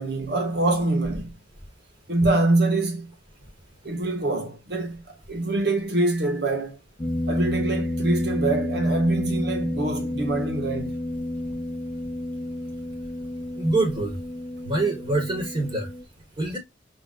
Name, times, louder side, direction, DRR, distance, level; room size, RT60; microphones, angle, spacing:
voice 1, 0.0-1.3 2.1-3.1 3.8-6.8 7.3-11.0, right 2 dB, 65° right, 1.8 m, -24 dB
sound 1, 7.0-16.0, left 1 dB, 20° left, 2.2 m, -30 dB
voice 2, 13.6-14.2 14.6-15.9 16.4-16.6, right 2 dB, 30° right, 4.6 m, -25 dB
5.8 x 4.9 x 3.7 m
head